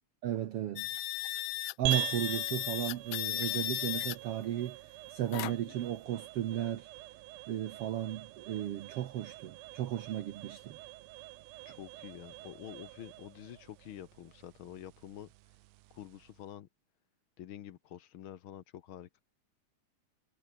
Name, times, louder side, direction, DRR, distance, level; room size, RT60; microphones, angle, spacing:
voice 1, 0.2-0.9 1.8-4.8 5.1-6.9 7.5-10.8, right 12 dB, 65° right, 1.6 m, -35 dB
sound 1, 0.8-4.2 5.3-5.7, left 19 dB, 85° left, 1.4 m, -35 dB
sound 2, 1.8-16.5, right 18 dB, 80° right, 1.6 m, -44 dB
voice 2, 11.6-15.3 15.9-16.7 17.4-19.2, left 11 dB, 65° left, 1.3 m, -48 dB
omnidirectional pair, 3.5 m